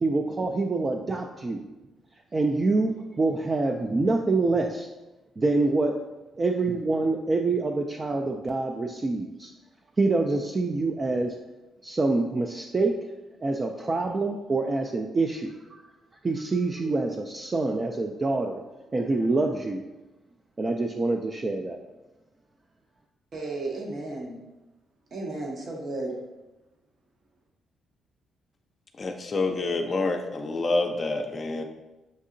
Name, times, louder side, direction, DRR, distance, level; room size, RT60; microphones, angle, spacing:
voice 1, 0.0-1.7 2.3-4.9 5.4-5.9 6.4-9.5 10.0-11.3 11.8-13.1 13.4-15.8 16.2-18.6 18.9-19.8 20.6-21.8, right 3 dB, 35° right, 2 dB, 0.4 m, -26 dB
voice 2, 23.3-24.4 25.1-26.2, right 2 dB, 60° right, 0 dB, 0.9 m, -33 dB
voice 3, 29.0-31.6, left 3 dB, 40° left, 3 dB, 0.4 m, -27 dB
6.3 x 2.7 x 2.5 m, 1.0 s
supercardioid pair, 60°, 0 cm